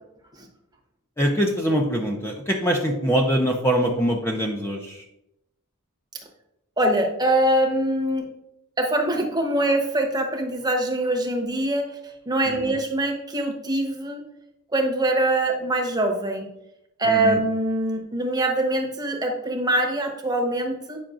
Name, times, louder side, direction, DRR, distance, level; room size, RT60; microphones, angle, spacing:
voice 1, 1.2-5.0 12.5-12.7 17.0-17.4, equal, 10° left, 0 dB, 0.5 m, -23 dB
voice 2, 6.8-8.3 8.8-11.9 12.3-14.2 14.7-16.5 17.0-21.0, right 1 dB, 20° right, 2 dB, 0.9 m, -23 dB
8.9 x 5.7 x 2.5 m, 0.85 s
head